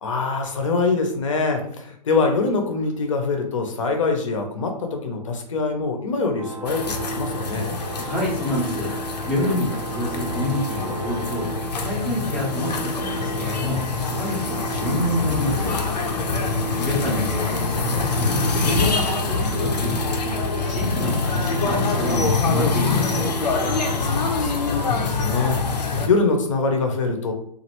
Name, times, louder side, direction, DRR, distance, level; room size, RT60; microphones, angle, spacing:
voice 1, 0.0-7.7 16.3-17.2 24.0-27.3, left 3 dB, 50° left, 4 dB, 0.6 m, -24 dB
sound 1, 6.4-24.0, right 5 dB, 55° right, 0.5 m, -35 dB
sound 2, 6.6-26.1, left 4 dB, 90° left, 0.6 m, -25 dB
voice 2, 8.0-8.9 9.3-11.5 11.8-15.8 16.8-20.4 20.7-23.3, left 1 dB, 5° right, -9 dB, 0.6 m, -28 dB
3.0 x 2.5 x 2.9 m, 0.68 s
hypercardioid pair, 165°, 21 cm